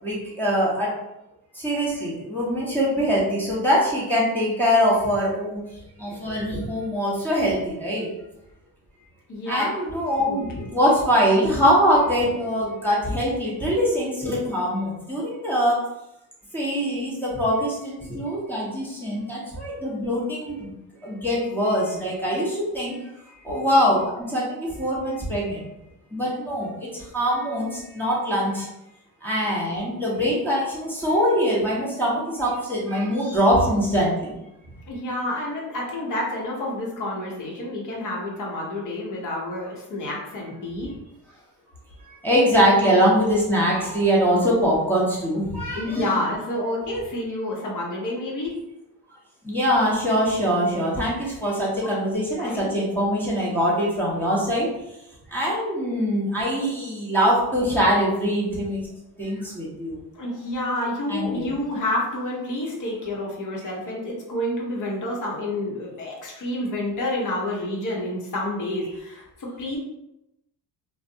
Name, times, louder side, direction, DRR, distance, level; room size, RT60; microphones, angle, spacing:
voice 1, 0.0-0.9 1.5-5.6 6.0-8.1 9.5-15.8 16.5-20.7 21.0-23.0 23.2-25.7 26.1-28.7 29.2-34.3 42.0-46.2 49.4-54.7 55.3-58.9 59.2-60.0 61.1-61.5, equal, 5° left, -7 dB, 0.9 m, -23 dB
voice 2, 9.3-9.7 10.2-10.7 34.9-40.9 45.7-48.5 51.8-51.9 52.4-52.7 60.1-69.8, left 1 dB, 50° left, -3 dB, 1.0 m, -29 dB
2.6 x 2.2 x 2.6 m, 0.88 s
cardioid pair, 100°, 40 cm